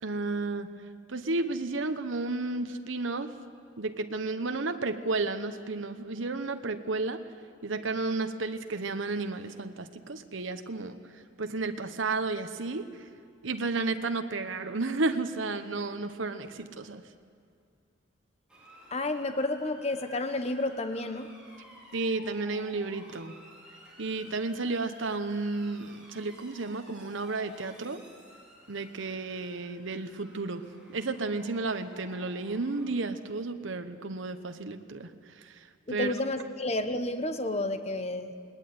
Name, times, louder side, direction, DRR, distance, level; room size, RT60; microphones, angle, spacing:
voice 1, 0.0-0.7 1.1-3.3 3.8-7.2 7.6-13.1 13.4-17.0 21.9-23.3 24.0-28.0 28.7-30.6 30.9-36.1, right 3 dB, 75° right, 8 dB, 1.1 m, -32 dB
Motor vehicle (road) / Siren, 18.5-33.0, equal, 5° right, 4.9 m, -54 dB
voice 2, 18.9-21.3 35.9-38.3, left 2 dB, 30° left, 8 dB, 1.2 m, -31 dB
20.0 x 19.0 x 9.5 m, 2.3 s
head